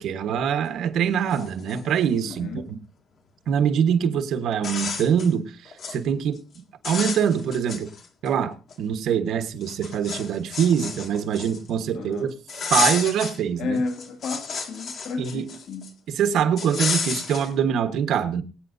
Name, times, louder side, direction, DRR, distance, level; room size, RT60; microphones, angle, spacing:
voice 1, 0.0-2.8 3.5-7.9 8.2-12.3 12.7-13.8 15.2-15.5 16.1-18.4, right 8 dB, 65° right, 1.2 m, -24 dB
sound 1, 0.9-1.0 1.3-2.4 3.9-4.0 4.5-5.3 5.6-6.0 6.4-6.6 6.8-8.3 8.7-8.8 9.6-11.8 12.5-13.4 13.8-15.9 16.6-17.5, left 5 dB, 50° left, 1.9 m, -31 dB
voice 2, 2.2-2.7 11.9-12.3 13.6-16.0, left 4 dB, 70° left, 1.7 m, -32 dB
22.5 x 8.9 x 2.7 m
cardioid pair, 150°, 0 cm